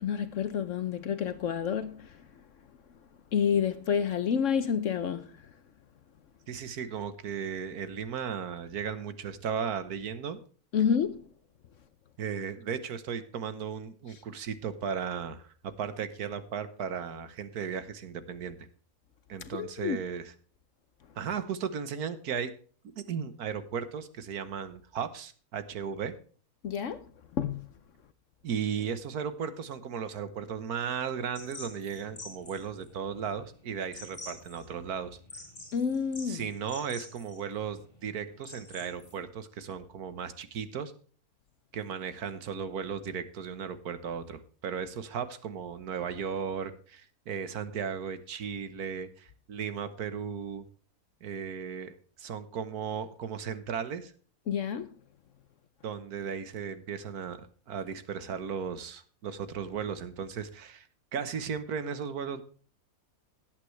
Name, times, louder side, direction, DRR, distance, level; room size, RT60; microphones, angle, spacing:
voice 1, 0.0-2.1 3.3-5.3 10.7-11.2 19.6-20.0 26.6-27.0 27.4-27.7 35.7-36.4 54.5-54.9, left 7 dB, 65° left, 1.0 m, -29 dB
voice 2, 6.5-10.4 12.2-15.5 15.8-18.7 19.3-20.3 21.2-22.5 22.9-26.1 28.4-35.2 36.3-40.9 41.7-50.6 51.2-54.1 55.8-60.9 61.1-62.4, right 7 dB, 85° right, 1.6 m, -36 dB
sound 1, 31.3-39.1, left 2 dB, 25° left, 4.1 m, -48 dB
18.0 x 8.3 x 3.2 m
omnidirectional pair, 1.6 m